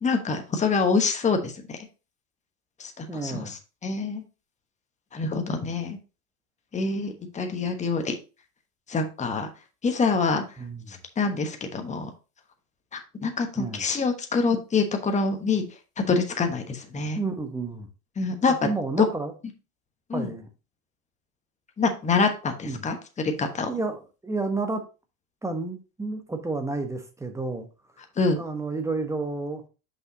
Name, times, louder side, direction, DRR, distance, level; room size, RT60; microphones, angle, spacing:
voice 1, 0.0-1.8 2.8-3.6 3.8-4.2 5.1-6.0 6.7-8.1 8.9-9.5 9.8-10.4 10.9-12.1 12.9-15.6 16.0-17.2 18.2-18.5 20.1-20.3 21.8-22.9 23.2-23.7 28.2-28.4, left 4 dB, 15° left, 5 dB, 1.1 m, -26 dB
voice 2, 3.1-3.5 10.6-11.0 13.5-13.9 17.1-17.9 18.5-19.3 20.1-20.5 22.6-22.8 23.7-24.8 25.4-27.7 28.4-29.6, right 3 dB, 5° right, 6 dB, 1.1 m, -31 dB
6.3 x 5.4 x 2.8 m, 0.31 s
hypercardioid pair, 85°, 43 cm